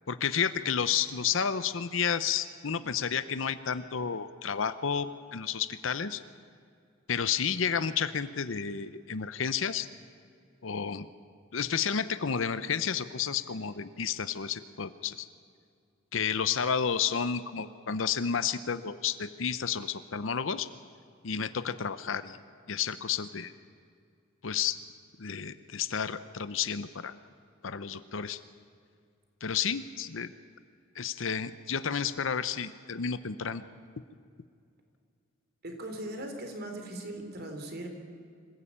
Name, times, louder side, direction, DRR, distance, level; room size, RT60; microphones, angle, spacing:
voice 1, 0.1-6.2 7.1-9.9 10.6-11.1 11.5-15.3 16.1-20.7 21.2-22.4 22.7-23.5 24.4-24.8 25.2-27.1 27.6-28.4 29.4-30.3 31.0-33.6, left 7 dB, 75° left, 13 dB, 0.8 m, -31 dB
voice 2, 35.6-37.9, right 1 dB, 55° right, 4 dB, 3.8 m, -39 dB
26.5 x 15.5 x 8.7 m, 2.3 s
head